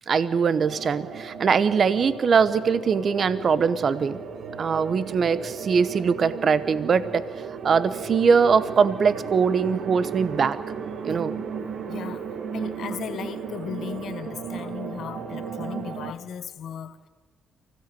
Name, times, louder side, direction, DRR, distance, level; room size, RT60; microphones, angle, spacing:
voice 1, 0.1-4.2 4.6-7.2 7.6-10.6 11.0-11.3, right 6 dB, 50° right, 16 dB, 0.9 m, -22 dB
sound 1, 0.6-16.1, right 6 dB, 65° right, 1.8 m, -35 dB
voice 2, 11.9-12.2 12.5-17.1, left 8 dB, 65° left, 11 dB, 1.4 m, -36 dB
24.5 x 16.0 x 9.2 m, 1.3 s
cardioid pair, 90°, 0 cm